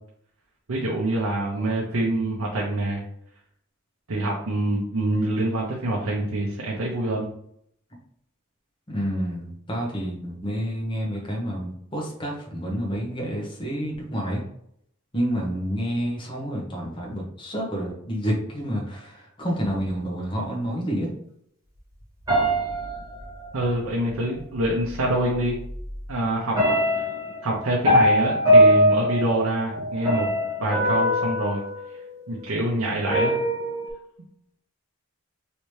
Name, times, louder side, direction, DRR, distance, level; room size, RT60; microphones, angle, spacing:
voice 1, 0.7-3.0 4.1-7.3 23.5-25.6 26.1-26.6 27.4-30.3 30.6-31.6 32.3-33.3, right 1 dB, 80° right, -3 dB, 0.7 m, -25 dB
voice 2, 8.9-14.4 15.1-21.1, equal, 25° left, -2 dB, 0.9 m, -29 dB
sound 1, 22.3-23.7 24.9-25.0 25.5-26.0 26.6-32.5 33.1-33.9, equal, 15° right, 1.5 m, -22 dB
3.2 x 2.9 x 3.1 m, 0.70 s
head